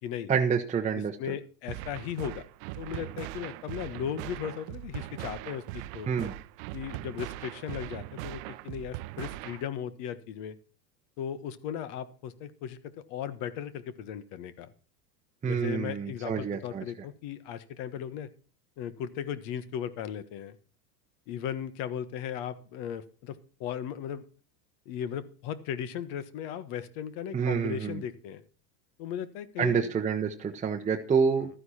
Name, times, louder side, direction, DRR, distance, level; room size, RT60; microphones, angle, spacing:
voice 1, 0.3-1.3 6.1-6.3 15.4-16.8 27.3-28.0 29.6-31.5, right 6 dB, 15° right, 3 dB, 0.9 m, -28 dB
voice 2, 1.2-2.4 2.8-6.3 6.7-10.6 11.2-14.7 15.4-18.3 18.8-20.6 21.3-24.2 24.8-28.4 29.0-29.9, left 9 dB, 55° left, 15 dB, 1.4 m, -37 dB
sound 1, 1.7-9.7, right 18 dB, 55° right, 0.6 m, -40 dB
13.0 x 9.6 x 4.2 m, 0.38 s
supercardioid pair, 115°, 49 cm